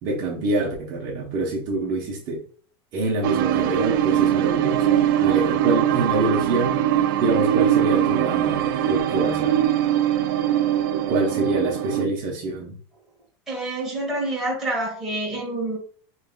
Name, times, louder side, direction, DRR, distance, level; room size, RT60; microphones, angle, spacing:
voice 1, 0.0-2.4 2.9-6.8 7.2-9.6 10.9-12.8, right 2 dB, 30° right, 0.9 m, -26 dB
sound 1, 3.2-12.1, right 11 dB, 55° right, 0.4 m, -21 dB
voice 2, 13.5-15.8, right 1 dB, ahead, 1.5 m, -27 dB
5.4 x 3.1 x 2.3 m
supercardioid pair, 180°, 13 cm